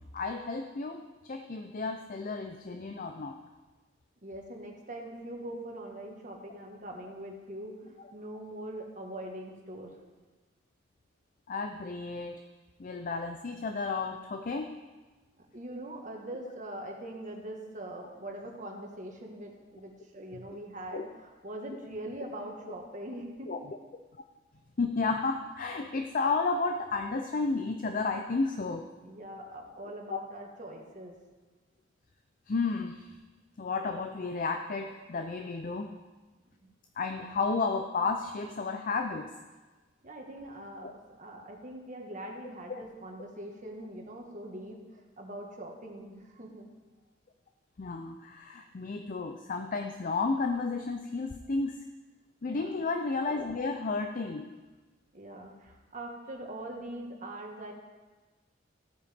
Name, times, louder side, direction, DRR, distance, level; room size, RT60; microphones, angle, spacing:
voice 1, 0.1-3.4 11.5-12.4 12.8-14.7 20.9-21.1 23.5-23.6 24.8-28.8 32.5-33.0 33.6-35.9 37.0-39.3 42.7-42.8 47.8-51.8 52.4-54.5, left 4 dB, 45° left, 5 dB, 0.5 m, -32 dB
voice 2, 4.2-10.0 15.4-23.7 29.0-31.1 36.6-36.7 40.0-46.7 52.4-52.7 55.1-57.7, right 1 dB, 40° right, 1 dB, 1.6 m, -42 dB
14.5 x 8.7 x 3.6 m, 1.3 s
head